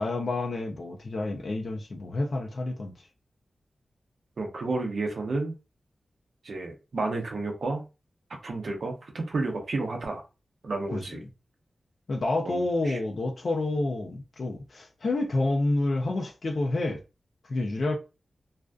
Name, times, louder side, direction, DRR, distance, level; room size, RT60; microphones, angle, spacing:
voice 1, 0.0-2.9 10.9-11.2 12.1-17.0 17.5-18.0, left 2 dB, 45° left, 0.4 m, -29 dB
voice 2, 4.4-5.5 6.4-7.8 8.4-10.2 10.6-11.2 12.5-13.0, right 3 dB, 55° right, 0.7 m, -31 dB
2.5 x 2.4 x 2.2 m
wide cardioid pair, 170°, 0 cm